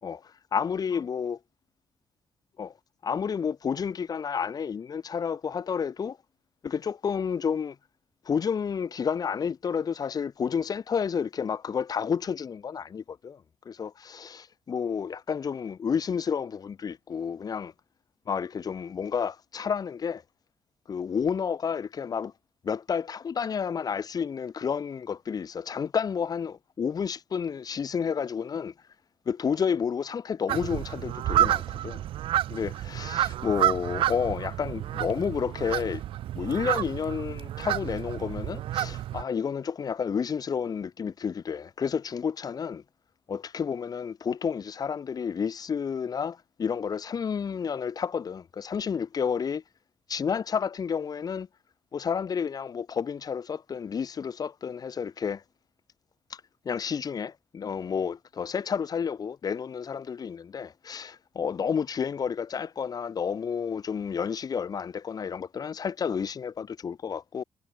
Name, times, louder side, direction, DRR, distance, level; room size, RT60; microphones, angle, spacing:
voice 1, 0.5-1.4 2.6-2.7 3.0-6.2 6.6-7.7 8.2-17.7 18.3-20.2 20.9-22.3 22.6-28.7 29.2-32.0 32.5-36.0 36.3-42.8 43.3-49.6 50.1-51.5 51.9-55.4 56.3-67.4, left 6 dB, 45° left, 5.1 m, -30 dB
sound 1, 30.5-39.2, right 13 dB, 90° right, 4.7 m, -29 dB
cardioid pair, 110°, 9 cm